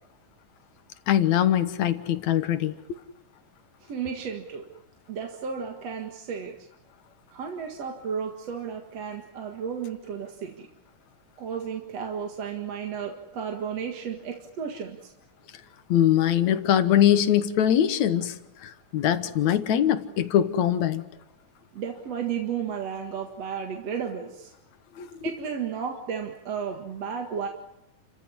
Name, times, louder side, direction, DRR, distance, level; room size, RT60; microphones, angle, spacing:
voice 1, 1.1-2.8 15.9-21.0 25.0-25.2, left 10 dB, 65° left, 11 dB, 2.3 m, -22 dB
voice 2, 3.8-4.6 5.1-6.6 7.3-10.7 11.4-15.1 21.7-24.5 25.2-27.5, right 7 dB, 50° right, 2 dB, 2.7 m, -33 dB
30.0 x 15.5 x 9.7 m, 0.90 s
omnidirectional pair, 3.9 m